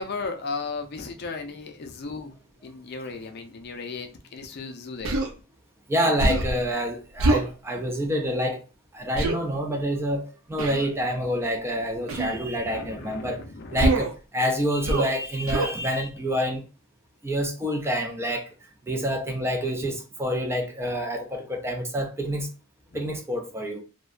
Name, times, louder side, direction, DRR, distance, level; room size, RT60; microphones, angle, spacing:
voice 1, 0.0-2.4 2.6-5.2 12.2-13.9 22.9-23.1, left 4 dB, 50° left, 0.4 m, -36 dB
Human voice, 5.0-5.3 6.2-6.6 7.2-7.5 9.2-9.4 10.6-10.9 12.1-12.4 13.8-14.2 14.8-15.2 15.5-15.8, right 2 dB, 75° right, 0.5 m, -24 dB
voice 2, 5.9-8.6 8.9-13.4 13.7-16.6 17.2-18.5 18.8-22.5 22.9-23.8, equal, 10° right, 0.3 m, -27 dB
2.6 x 2.1 x 2.3 m
head